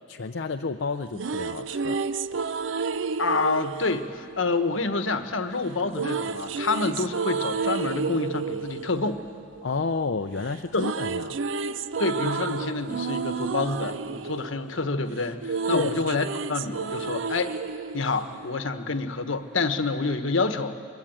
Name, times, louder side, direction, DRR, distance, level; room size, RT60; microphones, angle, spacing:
voice 1, 0.1-2.0 9.6-11.4 15.7-15.9, left 4 dB, 70° left, 5 dB, 0.6 m, -30 dB
sound 1, 0.9-5.1 5.9-10.2 10.4-18.9, right 5 dB, 75° right, 0.5 m, -31 dB
voice 2, 3.2-9.3 10.7-10.8 12.0-17.5 17.9-20.8, left 3 dB, 85° left, 8 dB, 1.3 m, -27 dB
23.5 x 22.0 x 9.0 m, 2.3 s
head